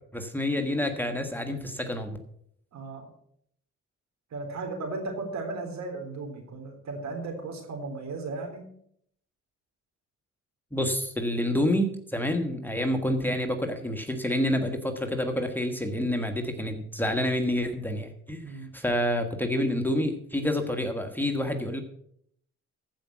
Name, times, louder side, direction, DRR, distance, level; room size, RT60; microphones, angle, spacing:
voice 1, 0.1-2.2 10.7-18.4 18.7-21.8, left 1 dB, 5° left, 5 dB, 1.4 m, -28 dB
voice 2, 2.7-3.1 4.3-8.7 18.4-18.7, right 3 dB, 65° right, 4 dB, 3.7 m, -36 dB
14.5 x 5.2 x 7.3 m, 0.69 s
cardioid pair, 90°, 30 cm